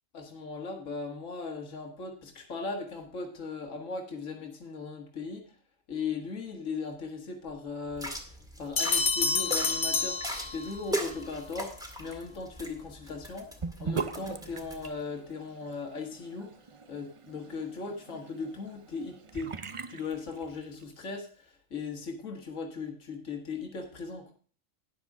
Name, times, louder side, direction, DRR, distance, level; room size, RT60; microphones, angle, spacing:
voice 1, 0.1-5.4 5.9-8.1 8.6-11.7 12.0-13.5 13.8-16.5 16.9-19.5 19.9-21.4 21.7-24.3, left 4 dB, 65° left, 2 dB, 2.1 m, -38 dB
sound 1, 7.9-14.9, right 1 dB, 5° right, 1.9 m, -39 dB
sound 2, 8.8-11.0, left 4 dB, 45° left, 0.8 m, -29 dB
Sink (filling or washing) / Bathtub (filling or washing), 13.6-20.9, right 5 dB, 40° right, 0.4 m, -41 dB
12.0 x 9.8 x 3.6 m, 0.43 s
omnidirectional pair, 1.4 m